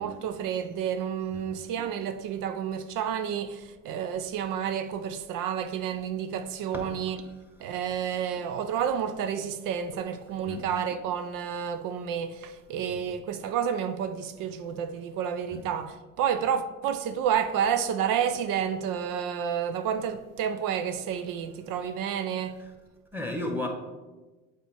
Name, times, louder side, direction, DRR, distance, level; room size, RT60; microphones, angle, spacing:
voice 1, 0.0-7.2 7.6-22.6, right 8 dB, 65° right, 0.6 m, -30 dB
voice 2, 23.1-23.7, left 1 dB, 5° right, 1.4 m, -32 dB
7.4 x 3.5 x 4.5 m
hypercardioid pair, 65°, 36 cm